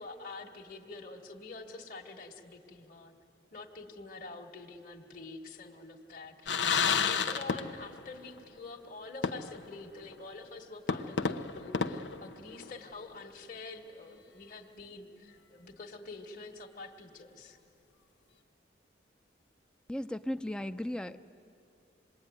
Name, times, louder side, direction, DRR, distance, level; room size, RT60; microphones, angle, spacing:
voice 1, 0.0-3.1 3.5-17.6, left 3 dB, 50° left, 0 dB, 1.6 m, -46 dB
sound 1, 6.5-8.1 8.3-8.4 9.2-9.8 10.1-10.2 10.9-12.9, left 5 dB, 80° left, 0.9 m, -31 dB
voice 2, 19.9-21.2, left 1 dB, 5° left, 10 dB, 0.5 m, -36 dB
26.5 x 21.0 x 9.6 m, 2.7 s
head